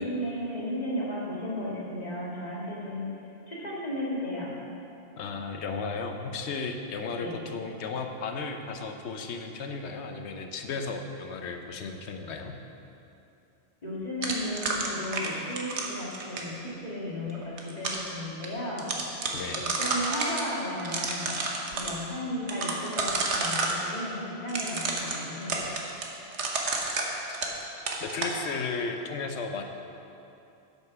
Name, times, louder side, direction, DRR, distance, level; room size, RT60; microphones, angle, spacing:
voice 1, 0.0-3.1 3.5-4.5 7.2-7.4 13.8-25.6, left 1 dB, 40° left, -6 dB, 2.0 m, -34 dB
voice 2, 5.2-12.6 19.3-19.6 26.8-26.9 27.3-27.4 28.0-29.6, left 4 dB, 80° left, 5 dB, 1.0 m, -34 dB
sound 1, 14.2-16.6 17.3-18.1 18.4-18.5 18.8-20.4 20.8-21.9 22.5-23.8 24.5-27.6 27.9-28.4, right 3 dB, 85° right, 1.3 m, -30 dB
8.0 x 7.2 x 5.7 m, 2.8 s
omnidirectional pair, 1.1 m